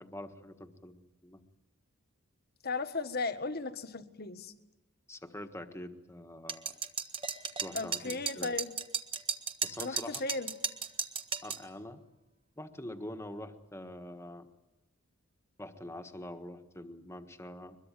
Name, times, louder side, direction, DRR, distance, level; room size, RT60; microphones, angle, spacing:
voice 1, 0.0-1.4 5.1-6.7 7.6-8.5 9.6-10.2 11.4-12.0 12.6-14.5 15.6-17.8, left 1 dB, 10° left, 7 dB, 1.5 m, -45 dB
voice 2, 2.6-4.5 7.7-8.7 9.8-10.5, left 3 dB, 45° left, 9 dB, 1.4 m, -36 dB
sound 1, 6.5-11.6, right 6 dB, 25° right, 1.3 m, -35 dB
23.0 x 22.0 x 9.1 m, 1.0 s
head